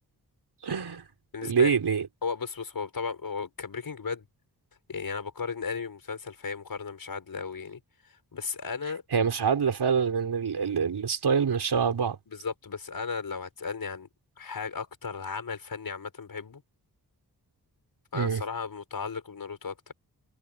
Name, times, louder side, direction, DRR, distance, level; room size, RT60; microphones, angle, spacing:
voice 1, 0.6-1.1 1.4-2.1 9.1-12.2 18.1-18.4, right 6 dB, 75° right, 5.2 m, -25 dB
voice 2, 1.3-1.8 2.2-4.3 4.9-9.0 12.3-14.1 14.4-16.6 18.1-19.9, left 5 dB, 60° left, 6.5 m, -35 dB
wide cardioid pair, 110°, 39 cm